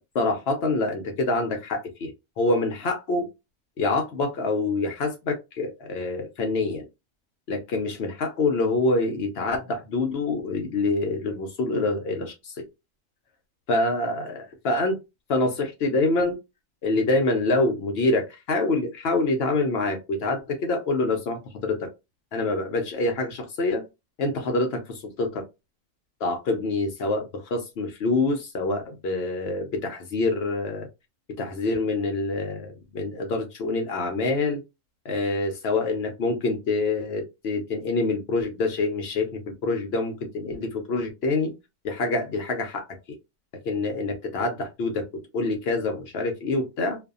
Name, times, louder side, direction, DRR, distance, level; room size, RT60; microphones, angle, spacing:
voice 1, 0.1-2.1 2.4-3.3 3.8-6.8 7.5-12.6 13.7-15.0 15.3-16.4 16.8-21.8 22.3-23.8 24.2-25.4 26.2-30.9 31.4-34.6 35.0-41.5 41.8-42.8 43.6-45.0 45.3-47.0, left 2 dB, 65° left, 4 dB, 0.7 m, -26 dB
2.5 x 2.3 x 2.3 m, 0.25 s
omnidirectional pair, 1.4 m